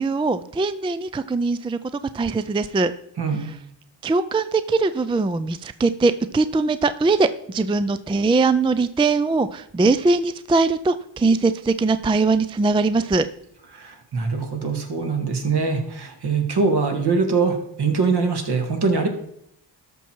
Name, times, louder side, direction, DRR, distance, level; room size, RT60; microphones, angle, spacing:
voice 1, 0.0-1.8 2.1-2.9 4.0-13.3, right 3 dB, 10° right, 12 dB, 0.4 m, -21 dB
voice 2, 3.2-3.5 13.7-19.1, right 4 dB, 60° right, 4 dB, 2.1 m, -23 dB
13.0 x 6.0 x 4.6 m, 0.74 s
cardioid pair, 80°, 45 cm